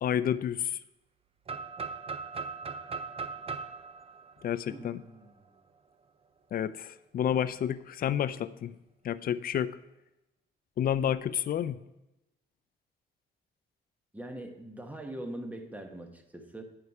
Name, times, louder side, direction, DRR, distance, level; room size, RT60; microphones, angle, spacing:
voice 1, 0.0-0.8 4.4-5.0 6.5-8.7 9.0-9.7 10.8-11.8, left 9 dB, 50° left, 15 dB, 0.4 m, -30 dB
sound 1, 1.5-5.3, right 4 dB, 30° right, 0.5 m, -39 dB
voice 2, 4.7-5.5 14.1-16.6, right 1 dB, 10° right, 5 dB, 1.1 m, -42 dB
9.4 x 5.6 x 4.7 m, 0.93 s
cardioid pair, 90°, 20 cm